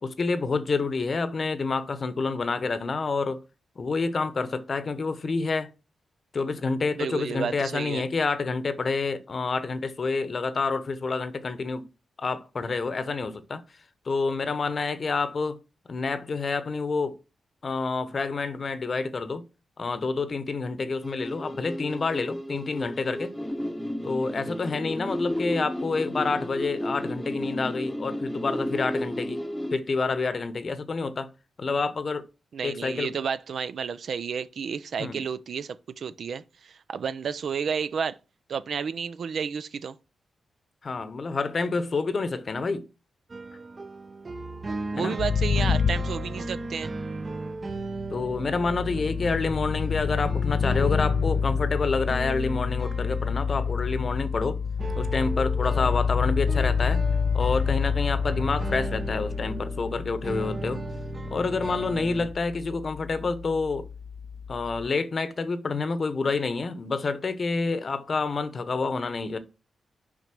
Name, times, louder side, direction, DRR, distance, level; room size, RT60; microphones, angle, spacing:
voice 1, 0.0-3.4 3.8-5.7 6.3-11.9 12.2-13.6 14.1-15.6 15.9-17.2 17.6-19.4 19.8-23.3 24.0-29.4 29.7-31.3 31.6-32.2 32.6-33.2 35.0-35.2 40.8-42.8 45.0-45.2 48.1-54.6 55.0-57.0 57.3-60.8 61.3-63.9 64.5-69.4, left 4 dB, 45° left, 0.9 m, -28 dB
voice 2, 7.0-8.0 32.5-38.1 38.5-39.9 44.9-46.9, right 6 dB, 70° right, 0.6 m, -31 dB
sound 1, 21.0-29.8, equal, ahead, 0.9 m, -33 dB
sound 2, 43.3-62.3, right 3 dB, 35° right, 0.7 m, -37 dB
sound 3, 45.2-46.9 48.0-64.9, left 6 dB, 70° left, 0.5 m, -28 dB
6.1 x 5.2 x 6.1 m
cardioid pair, 95°, 0 cm